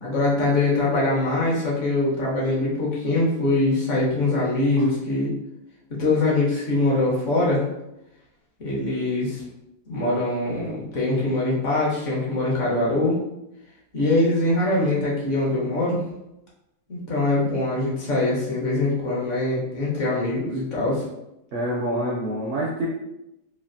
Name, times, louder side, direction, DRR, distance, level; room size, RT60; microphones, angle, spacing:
voice 1, 0.0-5.3 5.9-7.6 8.6-9.4 9.9-13.2 13.9-16.0 16.9-21.0, left 2 dB, 55° left, -5 dB, 1.0 m, -23 dB
voice 2, 21.5-22.9, right 1 dB, 70° right, -3 dB, 0.7 m, -26 dB
3.1 x 2.3 x 2.5 m, 0.87 s
omnidirectional pair, 1.7 m